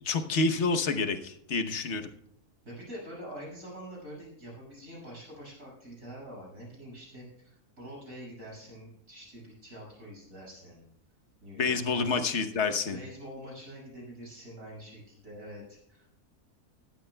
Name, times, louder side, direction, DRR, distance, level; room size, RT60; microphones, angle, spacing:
voice 1, 0.0-2.1 11.6-13.0, left 4 dB, 50° left, 8 dB, 1.2 m, -28 dB
voice 2, 2.6-10.9 11.4-12.2 12.9-16.1, equal, 60° right, -3 dB, 6.5 m, -45 dB
18.5 x 12.5 x 2.2 m, 0.79 s
omnidirectional pair, 1.6 m